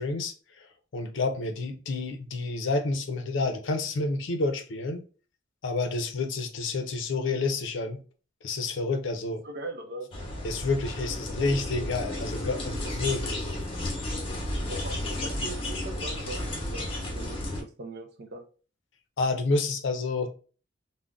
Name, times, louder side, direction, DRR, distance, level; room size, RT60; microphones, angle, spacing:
voice 1, 0.0-5.0 5.6-8.0 8.4-9.4 10.4-13.5 19.2-20.3, left 3 dB, 65° left, 0.5 m, -29 dB
voice 2, 9.4-10.1 12.8-12.9 14.7-18.4, right 2 dB, 55° right, 0.6 m, -41 dB
sound 1, 10.1-17.6, left 1 dB, 30° left, 0.7 m, -33 dB
3.7 x 2.1 x 2.3 m
head